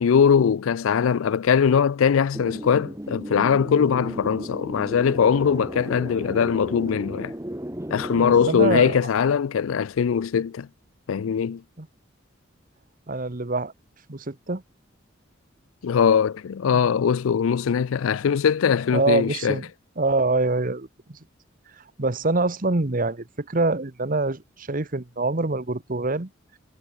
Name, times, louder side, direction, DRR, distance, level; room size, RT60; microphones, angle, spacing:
voice 1, 0.0-7.3 7.9-10.7 11.1-11.6 15.8-19.6, left 7 dB, 90° left, 0.4 m, -21 dB
sound 1, 2.3-9.0, right 1 dB, 15° right, 1.3 m, -35 dB
voice 2, 8.2-9.0 11.8-11.9 13.1-13.7 14.1-14.6 16.7-16.8 18.9-19.7 20.0-21.2 22.0-26.3, right 3 dB, 45° right, 1.2 m, -25 dB
head